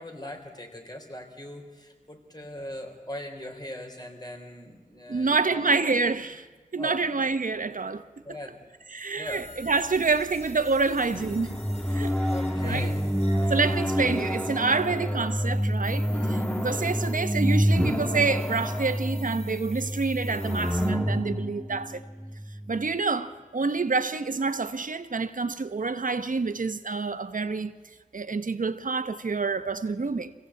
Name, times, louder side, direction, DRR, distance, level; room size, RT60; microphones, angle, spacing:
voice 1, 0.0-6.0 6.8-7.0 8.2-8.6 9.2-9.4 12.3-13.1 13.4-13.5 14.9-15.0, left 1 dB, 30° left, 3.8 m, -40 dB
voice 2, 5.1-6.5 6.7-8.0 8.9-11.6 11.9-12.2 12.6-12.9 13.5-22.0 22.7-27.8 28.1-30.3, right 4 dB, 80° right, 1.1 m, -27 dB
sound 1, 9.2-20.9, left 1 dB, 55° left, 4.4 m, -48 dB
sound 2, 11.1-22.8, equal, 10° left, 1.6 m, -28 dB
25.5 x 16.5 x 8.5 m
wide cardioid pair, 60°, 13 cm